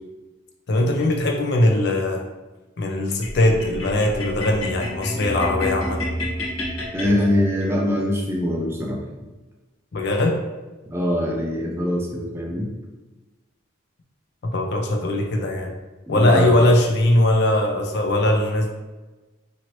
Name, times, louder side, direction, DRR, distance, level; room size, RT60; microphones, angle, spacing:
voice 1, 0.7-2.2 2.8-6.0 9.9-10.4 14.4-15.7 16.1-18.7, left 1 dB, 55° left, 2 dB, 0.4 m, -20 dB
sound 1, 3.2-7.7, left 1 dB, 85° left, 1.3 m, -29 dB
voice 2, 6.9-9.0 10.9-12.7 16.1-16.7, left 1 dB, 10° right, -1 dB, 0.3 m, -23 dB
2.9 x 2.6 x 2.9 m, 1.2 s
head